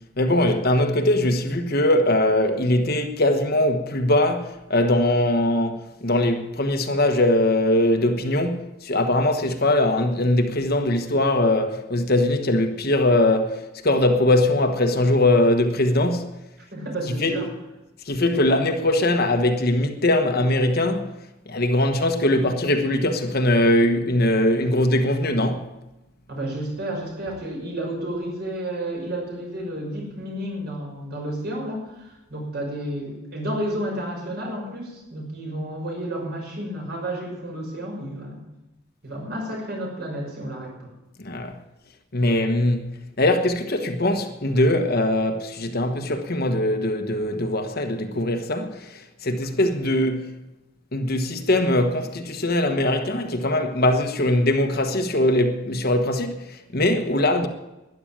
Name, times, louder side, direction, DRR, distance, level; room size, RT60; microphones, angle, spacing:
voice 1, 0.2-16.3 17.2-17.3 18.1-21.1 21.5-25.7 41.2-41.5 42.1-42.9 43.2-50.3 50.9-57.5, left 1 dB, 50° left, 1.3 m, -21 dB
voice 2, 16.7-17.5 26.3-38.4 39.0-40.9, right 1 dB, 50° right, 5.9 m, -31 dB
12.5 x 11.0 x 8.8 m
head